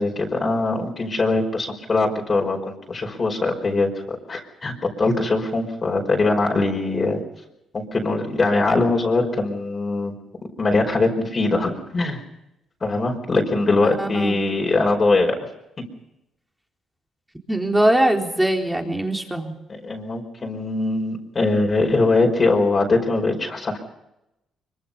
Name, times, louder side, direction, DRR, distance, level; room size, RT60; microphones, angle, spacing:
voice 1, 0.0-3.9 4.3-7.2 7.7-10.1 10.6-12.2 12.8-15.3 19.7-23.8, left 3 dB, 35° left, 1 dB, 5.1 m, -21 dB
voice 2, 14.0-14.4 17.5-19.6, right 1 dB, 5° right, 2 dB, 4.1 m, -21 dB
24.0 x 24.0 x 5.6 m, 0.88 s
cardioid pair, 90°, 0 cm